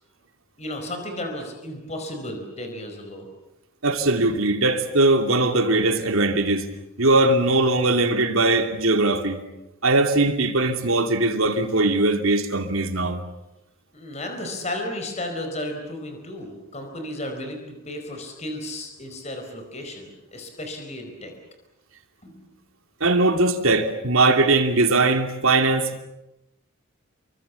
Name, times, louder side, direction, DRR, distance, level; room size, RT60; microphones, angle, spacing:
voice 1, 0.6-3.3 13.9-21.3 22.2-22.4, left 1 dB, 30° left, 4.6 m, -34 dB
voice 2, 3.8-6.7 7.0-9.4 9.8-13.2 23.0-26.0, right 2 dB, 75° right, 2.8 m, -20 dB
28.5 x 24.0 x 7.1 m
head